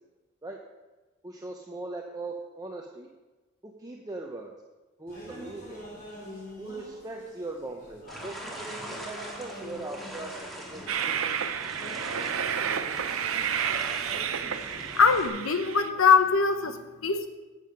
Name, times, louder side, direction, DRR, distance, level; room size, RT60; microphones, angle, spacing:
voice 1, 1.2-3.1 3.6-4.5 5.0-5.9 6.6-11.3, right 2 dB, 20° right, 1 dB, 0.7 m, -40 dB
sound 1, 5.1-15.5, equal, 45° left, 4.0 m, -46 dB
sound 2, 8.1-15.3, equal, ahead, 1.7 m, -42 dB
Train, 10.9-15.9, right 8 dB, 75° right, 0.6 m, -31 dB
voice 2, 14.9-17.3, left 5 dB, 75° left, 8 dB, 0.9 m, -22 dB
11.0 x 7.6 x 5.2 m, 1.2 s
head